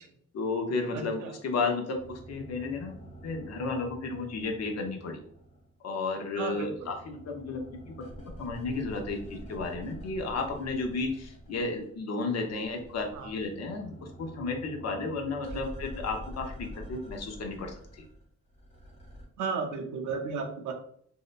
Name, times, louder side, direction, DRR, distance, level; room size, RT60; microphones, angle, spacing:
voice 1, 0.3-3.0 3.2-5.2 5.8-8.0 8.4-17.7, left 3 dB, 55° left, 3 dB, 0.6 m, -33 dB
voice 2, 0.9-1.3 6.4-6.9 13.1-13.3 15.5-15.6 19.4-20.7, right 5 dB, 75° right, 4 dB, 0.6 m, -34 dB
sound 1, 1.9-5.7 6.0-12.0 12.2-19.3, equal, 20° left, 0.8 m, -47 dB
2.7 x 2.1 x 2.4 m, 0.62 s
cardioid pair, 90°, 30 cm